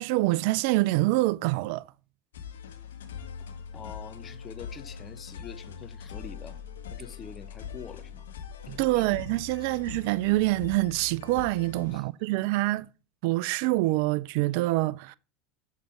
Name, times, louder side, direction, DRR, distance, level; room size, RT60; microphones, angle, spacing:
voice 1, 0.0-1.9 8.7-12.9 13.2-15.2, right 20 dB, 65° right, 0.4 m, -26 dB
sound 1, 2.3-12.0, left 7 dB, 85° left, 1.4 m, -42 dB
voice 2, 3.7-6.6 6.9-8.2 8.7-9.1 11.9-12.0, left 7 dB, 30° left, 1.0 m, -45 dB
7.3 x 6.5 x 5.8 m
hypercardioid pair, 90°, 0 cm